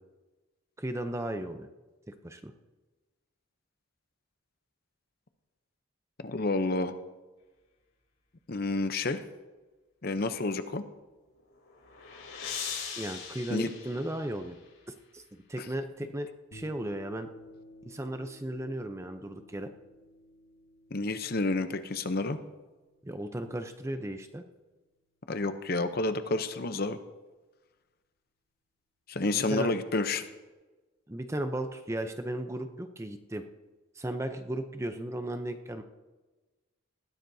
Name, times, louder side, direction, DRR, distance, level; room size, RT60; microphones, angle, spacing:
voice 1, 0.8-1.7 2.1-2.5 13.0-14.6 14.9-15.2 15.5-17.3 17.8-19.7 23.0-24.4 29.2-29.7 31.1-33.4 34.0-35.8, right 1 dB, 15° right, 7 dB, 0.6 m, -35 dB
voice 2, 6.2-6.9 8.5-9.2 10.0-10.8 12.7-12.8 13.5-13.7 20.9-22.4 25.3-27.0 29.1-30.3, left 2 dB, 45° left, 9 dB, 0.7 m, -29 dB
sound 1, 11.4-14.7, left 6 dB, 85° left, 3.7 m, -41 dB
sound 2, 16.5-25.0, left 1 dB, 65° left, 1.6 m, -55 dB
20.0 x 15.0 x 2.7 m, 1.2 s
head